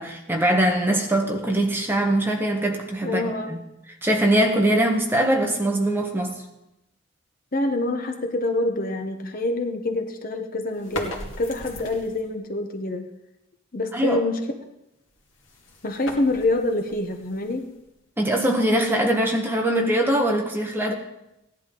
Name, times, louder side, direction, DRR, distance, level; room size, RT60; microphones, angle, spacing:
voice 1, 0.0-3.6 4.0-6.4 13.9-14.2 18.2-20.9, right 1 dB, 10° right, 1 dB, 1.3 m, -22 dB
voice 2, 3.0-3.6 7.5-13.1 13.7-14.4 15.8-17.7, left 2 dB, 45° left, 5 dB, 1.0 m, -26 dB
sound 1, 10.7-12.4 15.1-18.0, left 1 dB, 75° left, 2.1 m, -38 dB
16.0 x 11.0 x 3.8 m, 0.89 s
head